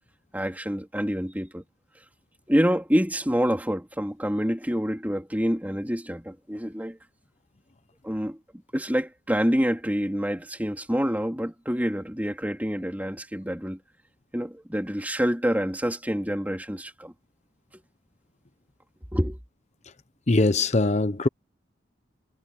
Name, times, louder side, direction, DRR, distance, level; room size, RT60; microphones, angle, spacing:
voice 1, 0.3-1.6 2.5-7.0 8.0-8.4 8.7-13.8 14.3-17.1 19.1-19.4, equal, 10° right, 3.3 m, -27 dB
voice 2, 20.3-21.3, left 2 dB, 35° left, 0.8 m, -21 dB
head